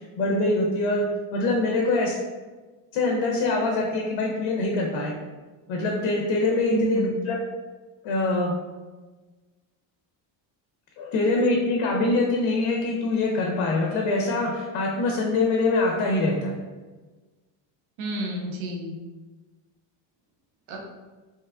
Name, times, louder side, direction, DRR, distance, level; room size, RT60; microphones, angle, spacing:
voice 1, 0.2-1.0 1.3-2.2 2.9-5.1 5.7-7.4 8.0-8.5 11.0-16.6, left 2 dB, 80° left, 0 dB, 0.7 m, -24 dB
voice 2, 6.7-7.2 18.0-19.0 20.7-20.8, right 3 dB, 70° right, 0 dB, 0.8 m, -30 dB
3.0 x 2.2 x 3.5 m, 1.3 s
cardioid pair, 115°, 47 cm